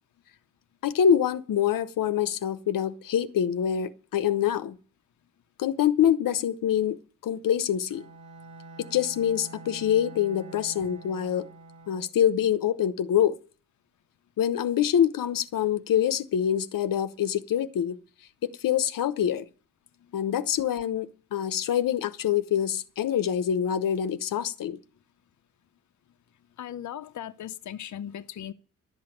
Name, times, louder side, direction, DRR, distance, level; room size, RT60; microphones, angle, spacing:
voice 1, 0.8-4.8 5.6-7.0 7.2-8.1 8.8-11.5 11.9-13.4 14.4-18.0 18.6-19.4 20.1-24.8, left 9 dB, 90° left, 0.9 m, -25 dB
Bowed string instrument, 7.9-12.2, right 2 dB, 60° right, 2.4 m, -46 dB
voice 2, 26.6-28.5, left 10 dB, 60° left, 0.7 m, -38 dB
12.0 x 7.9 x 8.9 m
wide cardioid pair, 140°, 32 cm